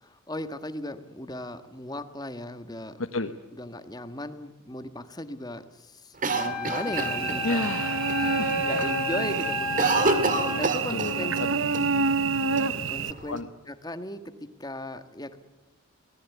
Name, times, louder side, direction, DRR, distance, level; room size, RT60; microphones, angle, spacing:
voice 1, 0.0-3.0 3.5-7.6 8.6-11.4 11.8-11.9 12.9-13.4 13.7-14.2 14.6-15.4, left 1 dB, 20° left, 10 dB, 1.5 m, -37 dB
voice 2, 3.0-3.3 7.4-8.6 10.9-11.5 13.3-13.5, left 2 dB, 85° left, 6 dB, 1.2 m, -31 dB
Cough, 6.2-7.7 8.1-8.2 8.5-8.9 9.2-11.5 11.7-11.8 12.6-13.4, right 3 dB, 40° right, 2.3 m, -27 dB
Wind instrument woodwind instrument, 6.3-10.6, left 5 dB, 5° left, 6.4 m, -33 dB
Cricket / Buzz, 6.9-13.1, right 4 dB, 70° right, 1.0 m, -28 dB
25.5 x 19.0 x 8.3 m, 1.0 s
head